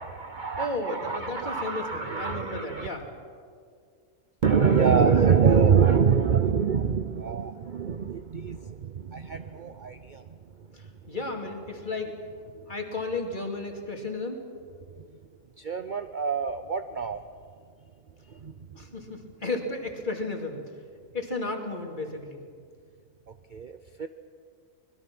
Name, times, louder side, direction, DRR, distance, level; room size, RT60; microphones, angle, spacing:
voice 1, 0.0-2.9 4.4-10.2 15.6-17.2 18.4-18.5 23.5-24.1, right 6 dB, 45° right, 9 dB, 0.7 m, -25 dB
voice 2, 0.6-3.1 10.7-12.1 12.7-14.4 18.8-20.6 21.1-22.4, left 2 dB, 35° left, 2 dB, 2.6 m, -33 dB
25.5 x 21.0 x 6.1 m, 2.1 s
omnidirectional pair, 1.4 m